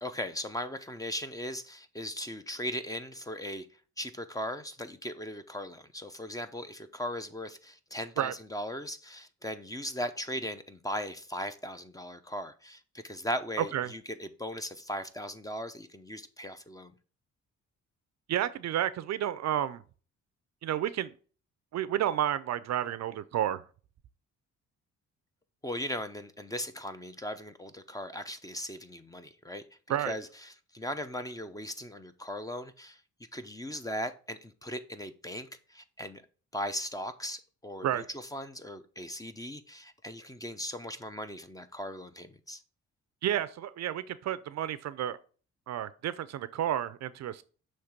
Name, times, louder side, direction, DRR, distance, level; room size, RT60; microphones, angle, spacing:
voice 1, 0.0-3.7 4.0-16.9 25.6-33.0 33.3-36.2 36.5-42.6, equal, 10° left, 0.6 m, -38 dB
voice 2, 18.3-19.8 20.6-21.1 21.7-23.6 29.9-30.1 37.8-38.1 43.2-45.2 45.7-47.4, right 11 dB, 60° right, 0.5 m, -31 dB
6.5 x 3.2 x 5.9 m
cardioid pair, 90°, 30 cm